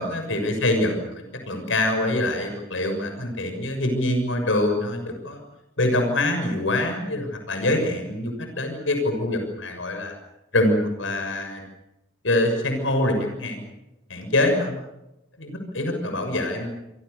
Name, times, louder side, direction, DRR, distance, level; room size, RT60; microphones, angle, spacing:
voice 1, 0.0-5.4 5.8-10.1 10.5-11.6 12.2-13.6 14.1-14.8 15.4-16.7, left 1 dB, 85° left, 5 dB, 6.6 m, -24 dB
28.0 x 26.5 x 6.9 m, 0.95 s
head